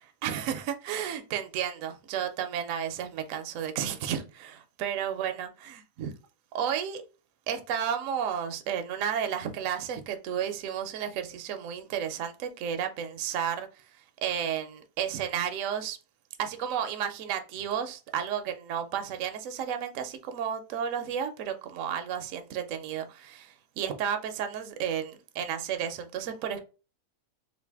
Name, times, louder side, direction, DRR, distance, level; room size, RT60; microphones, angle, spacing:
voice 1, 0.2-5.5 6.0-6.1 6.5-7.0 7.5-13.7 14.2-16.0 16.4-26.6, right 8 dB, 65° right, 0.8 m, -32 dB
3.2 x 2.5 x 3.4 m
omnidirectional pair, 1.8 m